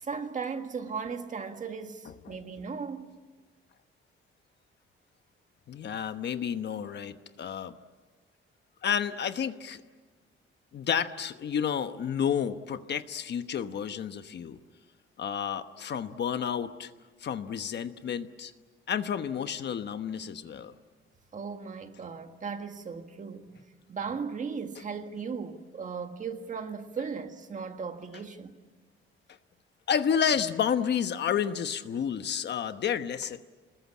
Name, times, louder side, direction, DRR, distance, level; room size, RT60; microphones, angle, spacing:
voice 1, 0.0-3.1 21.3-23.6 23.9-28.6, right 5 dB, 35° right, 1.8 m, -37 dB
voice 2, 5.7-7.7 8.8-9.8 10.7-14.6 15.2-16.9 17.2-18.5 18.9-20.7 29.9-33.4, left 8 dB, 55° left, 1.1 m, -30 dB
28.0 x 21.0 x 8.6 m
cardioid pair, 150°, 21 cm